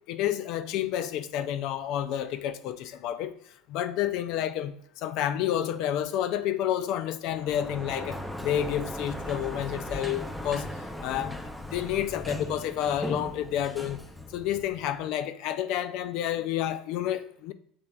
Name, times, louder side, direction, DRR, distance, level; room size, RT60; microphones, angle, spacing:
voice 1, 0.1-3.3 3.7-10.7 11.0-11.4 11.7-14.0 14.3-17.5, left 11 dB, 65° left, 0.4 m, -30 dB
Sliding door, 7.3-15.0, left 1 dB, 5° left, 0.5 m, -38 dB
6.9 x 3.2 x 2.4 m
supercardioid pair, 110°, 0 cm